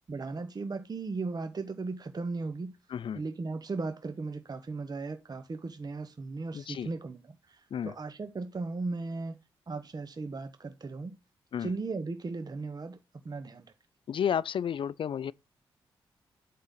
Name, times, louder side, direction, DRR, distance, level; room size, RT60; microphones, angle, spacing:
voice 1, 0.1-2.8 3.2-7.2 7.5-9.4 9.7-11.2 11.6-13.0 13.2-13.6, right 3 dB, 40° right, 0.9 m, -36 dB
voice 2, 2.9-3.2 6.5-6.9 7.7-7.9 11.5-11.7 14.1-15.3, left 8 dB, 60° left, 0.4 m, -32 dB
7.9 x 3.7 x 5.8 m
supercardioid pair, 45°, 10 cm